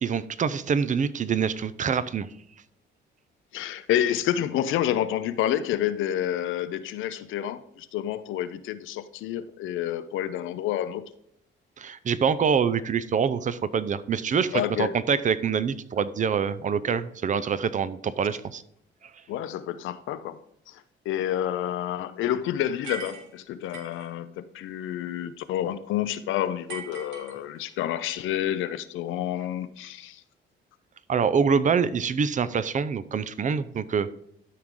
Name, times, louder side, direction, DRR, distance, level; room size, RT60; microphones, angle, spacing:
voice 1, 0.0-2.3 11.8-18.6 31.1-34.2, right 6 dB, 40° right, 0.6 m, -25 dB
voice 2, 3.5-11.0 14.5-14.9 19.3-30.2, left 11 dB, 85° left, 0.5 m, -29 dB
sound 1, 22.8-24.1 26.7-27.8, right 5 dB, 70° right, 2.1 m, -41 dB
12.5 x 4.7 x 3.7 m
cardioid pair, 90°, 20 cm